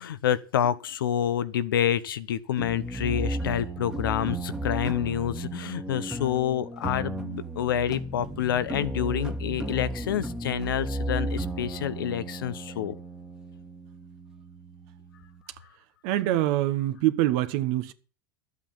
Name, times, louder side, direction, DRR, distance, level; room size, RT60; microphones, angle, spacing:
voice 1, 0.0-12.9, left 10 dB, 85° left, 0.9 m, -28 dB
sound 1, 2.6-15.4, right 1 dB, 5° right, 1.5 m, -34 dB
voice 2, 16.0-17.9, right 14 dB, 65° right, 1.2 m, -25 dB
12.0 x 8.2 x 7.2 m
hypercardioid pair, 95°, 11 cm